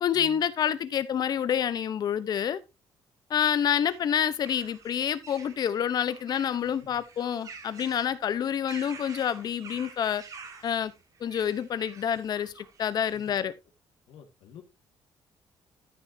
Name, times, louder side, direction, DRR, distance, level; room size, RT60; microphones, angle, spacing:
voice 1, 0.0-2.6 3.3-10.2 10.6-10.9 11.2-13.5, left 9 dB, 50° left, 0.8 m, -28 dB
sound 1, 3.4-13.3, right 5 dB, 40° right, 1.9 m, -49 dB
voice 2, 13.1-13.4 14.1-14.6, left 7 dB, 80° left, 1.9 m, -49 dB
13.5 x 6.4 x 2.7 m
cardioid pair, 150°, 9 cm